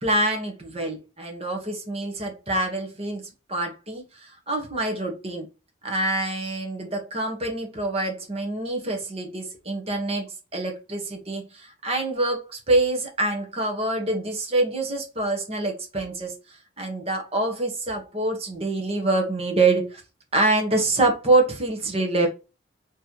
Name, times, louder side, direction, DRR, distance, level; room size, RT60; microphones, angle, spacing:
voice 1, 0.0-3.2 3.5-5.5 5.8-16.3 16.8-20.0 20.3-22.3, right 2 dB, 30° right, 2 dB, 1.2 m, -25 dB
4.1 x 3.2 x 3.0 m, 0.29 s
head